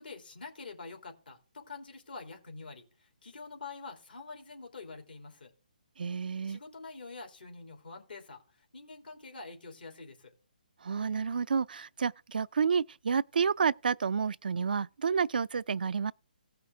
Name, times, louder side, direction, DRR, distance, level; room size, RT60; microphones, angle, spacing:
voice 1, 0.0-5.5 6.5-8.4 8.7-10.3, left 4 dB, 80° left, 3.0 m, -46 dB
voice 2, 6.0-6.6 10.8-16.1, right 6 dB, 70° right, 0.4 m, -30 dB
16.5 x 5.8 x 3.6 m
hypercardioid pair, 150°, 5 cm